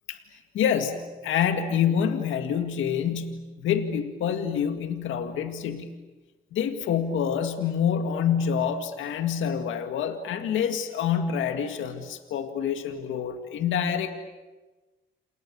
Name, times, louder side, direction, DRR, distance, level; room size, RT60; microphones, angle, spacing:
voice 1, 0.5-5.9 6.5-14.1, left 8 dB, 80° left, 7 dB, 2.0 m, -27 dB
28.5 x 28.0 x 7.1 m, 1.2 s
cardioid pair, 90°, 20 cm